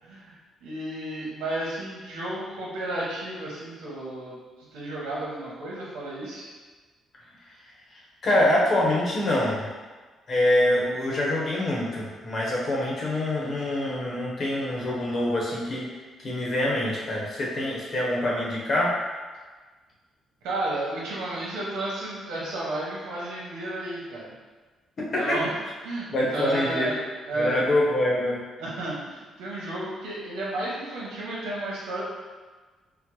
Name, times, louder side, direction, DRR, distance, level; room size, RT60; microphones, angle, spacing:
voice 1, 0.0-6.5 20.4-24.3 25.2-27.6 28.6-32.0, right 1 dB, 90° right, -5 dB, 0.8 m, -32 dB
voice 2, 8.2-9.7 10.3-15.9 16.2-18.9 25.0-25.4 26.1-26.9 27.3-28.4, left 1 dB, 50° left, -4 dB, 0.9 m, -25 dB
3.8 x 2.0 x 3.0 m, 1.4 s
cardioid pair, 90°, 0 cm